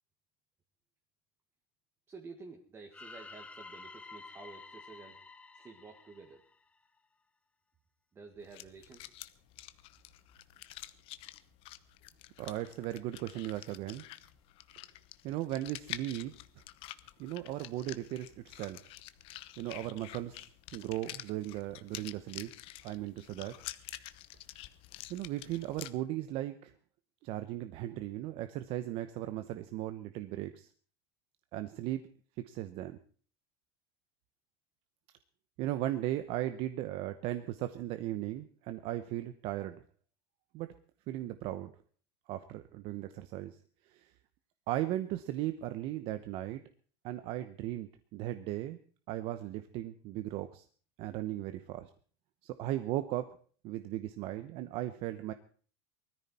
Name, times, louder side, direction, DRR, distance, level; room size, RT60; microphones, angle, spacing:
voice 1, 2.1-5.2 5.5-6.4 8.1-9.1, right 4 dB, 20° right, 2 dB, 1.8 m, -51 dB
sound 1, 2.9-7.0, left 3 dB, 10° left, 0.7 m, -51 dB
sound 2, 8.4-25.9, left 15 dB, 45° left, 0.9 m, -48 dB
voice 2, 12.4-14.0 15.2-16.3 17.2-18.8 19.6-20.4 20.7-22.5 22.8-23.5 25.1-26.7 27.2-30.7 31.5-32.0 32.4-33.0 35.6-39.8 40.5-40.7 41.1-41.7 42.3-43.6 43.9-44.1 44.7-46.6 47.0-48.8 49.1-50.6 51.0-51.9 52.4-53.4 53.6-55.3, right 14 dB, 50° right, 10 dB, 0.9 m, -37 dB
19.5 x 14.0 x 4.3 m, 0.42 s
supercardioid pair, 150°, 13 cm